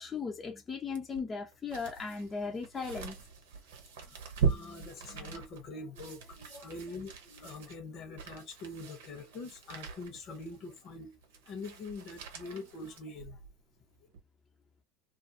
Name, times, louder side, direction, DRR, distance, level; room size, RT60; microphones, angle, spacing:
voice 1, 0.0-3.1, left 5 dB, 30° left, 0.6 m, -37 dB
sound 1, 0.9-13.6 14.1-14.2, right 6 dB, 80° right, 0.8 m, -40 dB
voice 2, 4.4-11.2 11.5-13.4, left 3 dB, 55° left, 1.0 m, -44 dB
2.5 x 2.2 x 2.7 m
hypercardioid pair, 85°, 0 cm